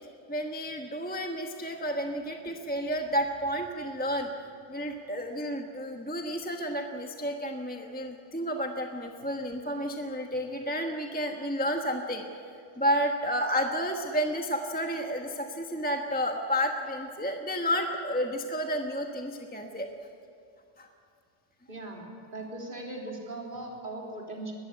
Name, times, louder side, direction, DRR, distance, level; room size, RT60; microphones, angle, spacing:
voice 1, 0.3-4.3 4.7-12.2 12.8-19.9 20.8-20.9, equal, 5° left, 3 dB, 1.0 m, -31 dB
voice 2, 21.7-22.1 22.3-24.5, right 2 dB, 35° right, -2 dB, 3.8 m, -39 dB
22.0 x 14.5 x 9.8 m, 2.4 s
omnidirectional pair, 1.6 m